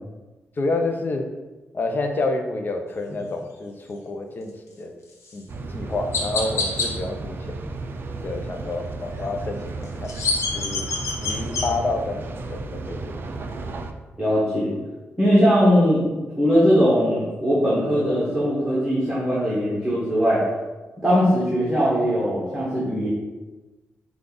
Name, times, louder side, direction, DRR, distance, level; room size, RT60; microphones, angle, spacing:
voice 1, 0.6-1.2 1.7-4.9 5.3-5.4 5.7-7.6 8.2-10.1 10.5-12.2 12.5-13.2, left 2 dB, 40° left, 4 dB, 0.5 m, -28 dB
Chirp tweet, 5.2-5.4 6.1-6.9 9.8-11.7, left 3 dB, 80° left, 0.8 m, -26 dB
sound 1, 5.5-13.9, right 3 dB, 50° right, 0.4 m, -33 dB
voice 2, 14.2-14.7 15.2-16.1 16.4-20.4 21.0-23.1, equal, 10° right, -7 dB, 1.1 m, -20 dB
5.1 x 2.4 x 3.8 m, 1.2 s
wide cardioid pair, 120°, 5 cm